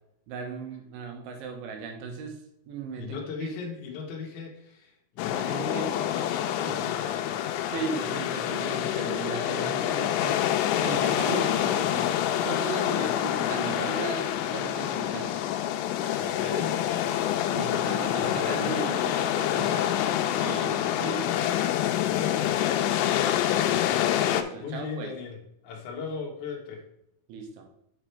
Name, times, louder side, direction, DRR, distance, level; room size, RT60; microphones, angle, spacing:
voice 1, 0.3-2.4 2.7-3.5 5.3-5.9 6.7-6.9 7.7-10.5 10.8-15.3 17.5-21.3 24.3-25.1 27.3-27.7, right 5 dB, 75° right, 3 dB, 3.5 m, -37 dB
voice 2, 2.9-7.8 16.2-16.8 18.2-19.3 22.1-22.8 23.4-26.9, left 5 dB, 65° left, -1 dB, 2.0 m, -38 dB
sound 1, 5.2-24.4, left 11 dB, 85° left, 2.9 m, -27 dB
7.8 x 6.1 x 3.4 m, 0.77 s
omnidirectional pair, 5.6 m